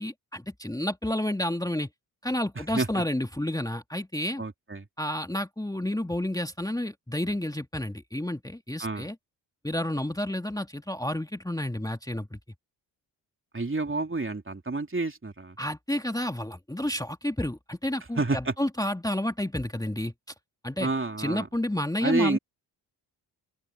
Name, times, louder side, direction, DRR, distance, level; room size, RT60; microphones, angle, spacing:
voice 1, 0.0-1.9 2.2-4.4 5.0-9.2 9.6-12.4 15.6-20.1 20.6-20.9 21.2-22.4, left 1 dB, 5° left, 2.3 m, -30 dB
voice 2, 4.4-4.9 8.8-9.1 13.5-15.6 18.2-18.5 20.8-21.5 22.0-22.4, right 3 dB, 25° right, 3.5 m, -29 dB
open air
hypercardioid pair, 40°, 48 cm